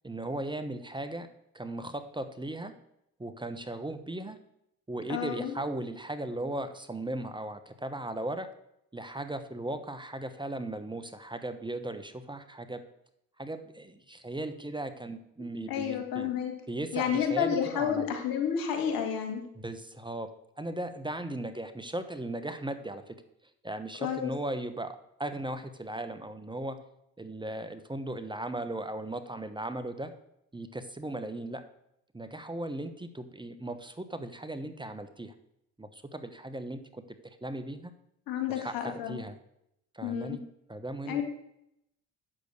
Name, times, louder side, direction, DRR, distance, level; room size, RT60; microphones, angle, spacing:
voice 1, 0.0-1.3 1.5-2.7 3.2-4.4 4.9-8.5 8.9-12.8 13.4-16.3 16.7-18.1 19.5-20.3 20.6-23.1 23.6-26.8 27.2-30.1 30.5-31.6 32.1-35.3 35.8-37.9 38.5-39.4 39.9-40.4 40.7-41.2, right 1 dB, 15° right, 10 dB, 1.1 m, -37 dB
voice 2, 5.1-5.6 15.7-16.5 16.9-19.4 24.0-24.3 38.3-39.2 40.0-40.4 41.1-41.2, left 8 dB, 70° left, 4 dB, 2.1 m, -30 dB
8.6 x 6.7 x 6.6 m, 0.77 s
hypercardioid pair, 60°, 36 cm